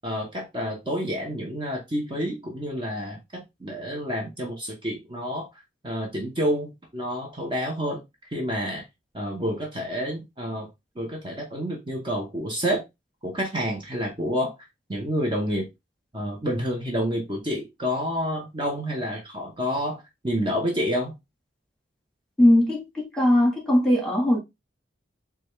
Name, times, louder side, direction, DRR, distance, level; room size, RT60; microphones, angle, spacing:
voice 1, 0.0-8.0 8.3-8.8 9.1-10.7 10.9-12.8 13.2-14.5 14.9-15.7 16.1-21.1, equal, 30° right, 0.9 m, -29 dB
voice 2, 22.4-24.4, left 1 dB, 5° left, 1.4 m, -20 dB
4.9 x 2.4 x 3.1 m
head